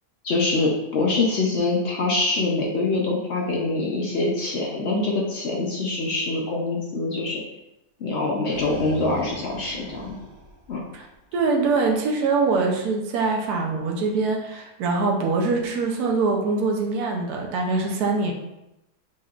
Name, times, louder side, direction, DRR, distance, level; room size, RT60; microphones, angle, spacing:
voice 1, 0.2-7.4 8.0-10.2 10.7-10.8, left 3 dB, 60° left, -1 dB, 0.7 m, -24 dB
sound 1, 8.1-11.4, right 2 dB, 50° right, 1.0 m, -40 dB
voice 2, 11.3-18.3, right 3 dB, 75° right, 1 dB, 1.2 m, -23 dB
5.7 x 3.0 x 2.4 m, 0.90 s
omnidirectional pair, 1.7 m